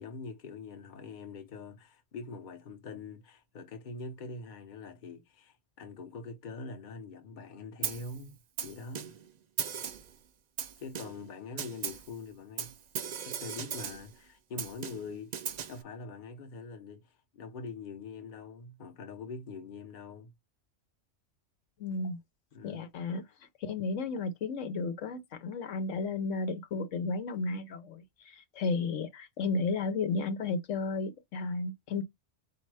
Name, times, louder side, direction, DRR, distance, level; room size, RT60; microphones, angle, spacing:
voice 1, 0.0-8.4 8.6-9.1 10.8-12.8 13.2-20.3 22.5-22.8, left 4 dB, 45° left, 0.9 m, -44 dB
Snare drum, 7.8-8.2 8.6-9.3 9.6-10.1 10.6-11.3 11.6-12.1 12.6-14.1 14.6-15.8, right 8 dB, 60° right, 0.4 m, -37 dB
voice 2, 21.8-22.2 22.6-23.2 23.6-32.0, left 3 dB, 85° left, 1.1 m, -33 dB
4.2 x 2.7 x 4.7 m
omnidirectional pair, 1.3 m